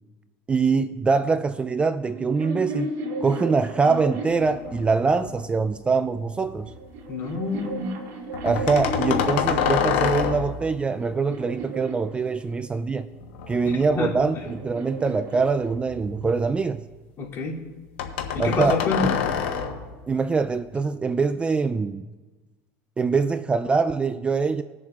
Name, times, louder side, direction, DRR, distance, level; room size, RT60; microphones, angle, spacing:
voice 1, 0.5-2.9 3.2-6.7 8.4-13.1 13.5-16.9 18.4-18.8 20.1-22.1 23.0-24.6, right 4 dB, 15° right, 12 dB, 0.3 m, -23 dB
sound 1, 2.0-5.4 6.3-9.7 10.4-12.8 13.9-16.3, right 1 dB, 65° right, 2.1 m, -35 dB
sound 2, 4.3-5.6 6.0-6.7 8.3-10.7 13.2-14.7 15.3-16.5 18.0-19.9, left 7 dB, 85° left, 1.2 m, -28 dB
voice 2, 7.1-7.9 13.6-14.4 17.2-17.6 18.3-19.3, left 4 dB, 45° left, -4 dB, 2.7 m, -28 dB
20.5 x 7.1 x 2.4 m, 1.2 s
supercardioid pair, 115°, 6 cm